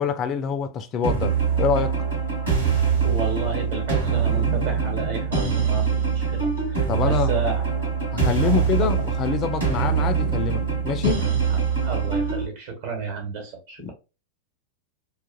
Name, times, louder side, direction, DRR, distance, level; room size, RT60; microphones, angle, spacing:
voice 1, 0.0-2.0 6.9-7.3 8.1-11.3 13.8-13.9, left 7 dB, 30° left, 0.3 m, -26 dB
sound 1, 1.0-12.5, right 6 dB, 75° right, 1.2 m, -23 dB
voice 2, 3.0-7.6 8.4-8.9 11.5-13.9, right 4 dB, 55° right, 1.1 m, -32 dB
2.4 x 2.4 x 2.5 m
figure-of-eight pair, 90°, 0 cm